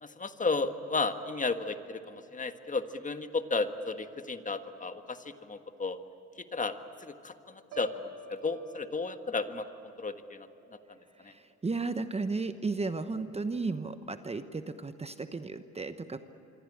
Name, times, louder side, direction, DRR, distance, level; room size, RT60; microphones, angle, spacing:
voice 1, 0.0-6.0 6.5-6.7 7.0-9.6 10.0-10.5, left 3 dB, 25° left, 8 dB, 1.5 m, -33 dB
Piano, 7.7-11.7 12.1-12.4, right 1 dB, 70° right, 4.4 m, -51 dB
voice 2, 11.2-16.2, right 3 dB, 20° right, 10 dB, 1.0 m, -34 dB
25.5 x 24.5 x 8.7 m, 2.9 s
supercardioid pair, 85°, 32 cm